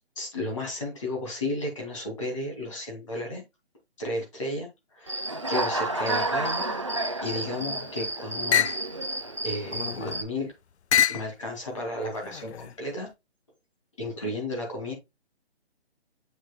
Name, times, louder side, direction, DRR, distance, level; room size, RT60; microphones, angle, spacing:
voice 1, 0.2-3.4 4.0-4.7 4.9-5.2 5.5-7.0 7.2-8.7 9.4-10.5 11.1-13.1 14.0-14.9, left 1 dB, 30° left, 0 dB, 2.6 m, -33 dB
Human voice / Cricket, 5.1-10.2, right 2 dB, 30° right, 0.6 m, -30 dB
sound 1, 7.4-7.9 8.5-8.9 9.6-10.3 10.9-11.3 12.1-12.8, left 8 dB, 80° left, 0.6 m, -27 dB
7.2 x 6.7 x 2.2 m, 0.22 s
hypercardioid pair, 175°, 33 cm